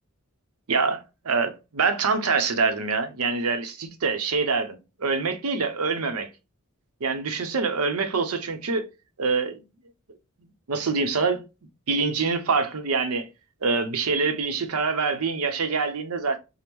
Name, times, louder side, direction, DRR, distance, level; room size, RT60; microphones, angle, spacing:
voice 1, 0.7-6.3 7.0-8.8 9.2-9.6 10.7-11.4 11.9-13.3 13.6-16.4, right 4 dB, 75° right, 0.6 m, -25 dB
5.2 x 2.0 x 3.0 m
head